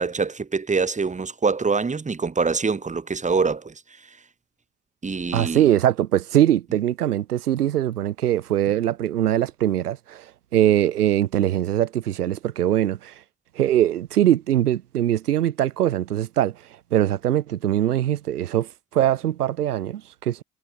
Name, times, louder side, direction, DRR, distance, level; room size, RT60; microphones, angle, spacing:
voice 1, 0.0-4.2 5.0-5.7, right 4 dB, 15° right, 1.3 m, -25 dB
voice 2, 5.3-10.2 10.5-13.1 13.6-16.5 16.9-20.4, right 12 dB, 85° right, 0.6 m, -22 dB
figure-of-eight pair, 55°, 44 cm